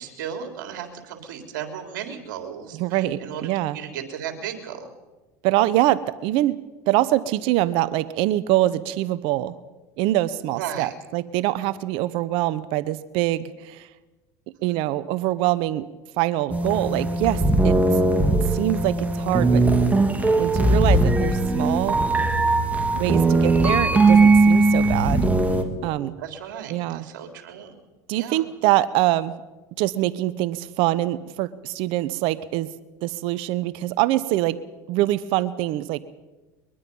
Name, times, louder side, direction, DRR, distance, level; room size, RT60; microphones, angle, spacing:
voice 1, 0.0-4.9 10.6-10.9 14.7-14.8 23.0-23.4 26.2-27.7 28.1-28.5, right 8 dB, 80° right, 5 dB, 3.7 m, -35 dB
voice 2, 2.7-3.8 5.4-6.6 6.9-9.5 10.0-13.9 14.6-15.9 16.2-17.8 18.5-19.6 20.4-22.0 22.9-25.3 25.8-26.2 26.7-27.1 28.1-29.3 29.8-32.7 33.0-34.6 34.9-36.0, right 15 dB, 65° right, 16 dB, 0.9 m, -24 dB
sound 1, 16.5-25.6, right 2 dB, 15° right, 2.5 m, -19 dB
22.5 x 22.0 x 5.5 m, 1.2 s
supercardioid pair, 95°, 10 cm